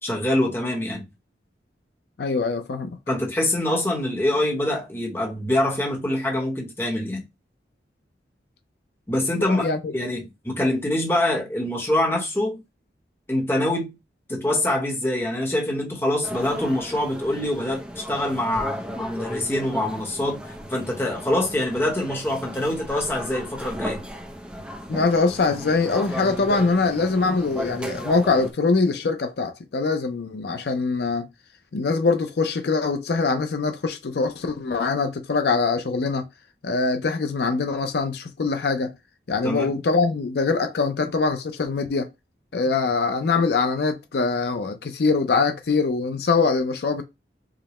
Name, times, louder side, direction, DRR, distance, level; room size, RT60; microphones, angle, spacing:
voice 1, 0.0-1.0 3.1-7.2 9.1-12.6 13.3-13.9 14.3-20.4 20.7-24.1 39.4-39.7, left 1 dB, 15° left, 0.9 m, -25 dB
voice 2, 2.2-3.0 9.3-9.9 24.9-31.3 31.7-36.3 36.6-38.9 39.3-42.1 42.5-47.0, left 4 dB, 65° left, 0.5 m, -23 dB
sound 1, 16.2-28.5, equal, 5° right, 0.5 m, -35 dB
4.9 x 2.1 x 2.9 m
head